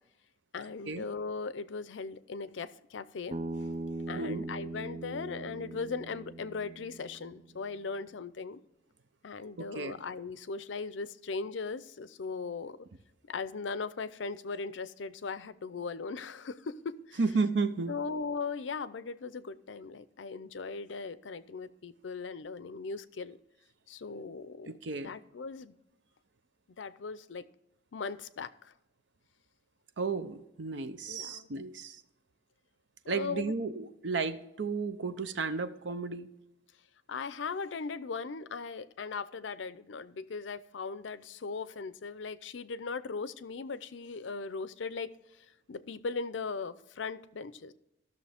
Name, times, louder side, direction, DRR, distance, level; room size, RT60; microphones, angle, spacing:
voice 1, 0.5-3.4 4.1-8.6 9.2-12.8 13.3-17.2 17.9-23.4 23.9-24.7 25.0-25.7 26.8-27.4 27.9-28.7 31.1-31.5 33.0-33.5 37.1-45.1 45.4-47.7, left 4 dB, 80° left, 0.5 m, -38 dB
Bass guitar, 3.3-7.6, right 2 dB, 35° right, 0.7 m, -40 dB
voice 2, 4.2-4.5 9.6-9.9 17.2-18.0 24.7-25.1 30.0-32.0 33.1-36.3, right 4 dB, 75° right, 0.7 m, -33 dB
13.5 x 6.5 x 3.5 m
head